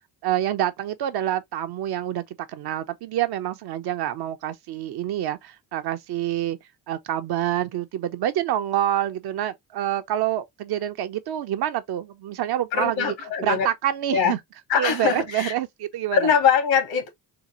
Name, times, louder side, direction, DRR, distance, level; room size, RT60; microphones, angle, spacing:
voice 1, 0.2-6.6 6.9-13.1 13.4-14.4 14.8-16.2, right 12 dB, 55° right, 0.6 m, -27 dB
voice 2, 12.7-13.7 14.1-14.4 14.7-15.5 16.1-17.1, left 7 dB, 70° left, 1.4 m, -22 dB
3.8 x 2.1 x 2.9 m
hypercardioid pair, 55°, 47 cm